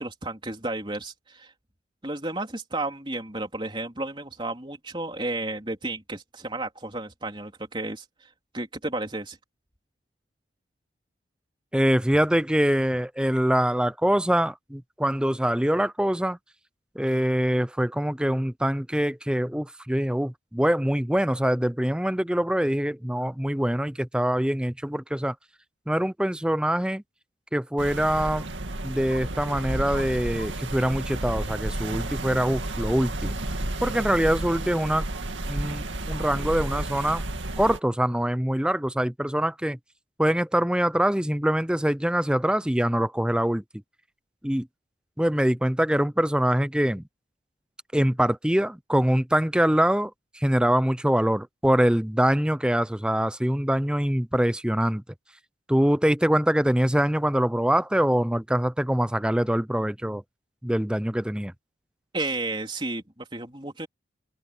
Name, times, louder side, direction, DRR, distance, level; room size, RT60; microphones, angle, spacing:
voice 1, 0.0-1.5 2.0-8.3 8.5-9.4 62.1-63.9, right 2 dB, 25° right, 3.6 m, -32 dB
voice 2, 11.7-16.4 17.0-25.3 25.9-27.0 27.5-28.5 28.8-33.4 33.8-35.1 35.5-37.2 37.6-39.8 40.2-43.6 44.4-44.7 45.2-47.0 47.9-55.0 55.7-60.2 60.6-61.5, equal, 5° right, 0.6 m, -24 dB
sound 1, 27.8-37.8, right 1 dB, 90° right, 2.2 m, -32 dB
open air
head